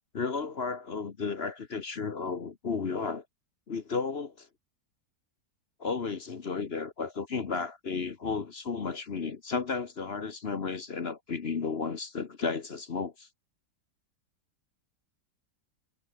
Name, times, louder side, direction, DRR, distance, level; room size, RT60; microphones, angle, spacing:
voice 1, 0.1-3.2 3.7-4.5 5.8-13.3, left 5 dB, 40° left, 1.2 m, -33 dB
omnidirectional pair, 1.9 m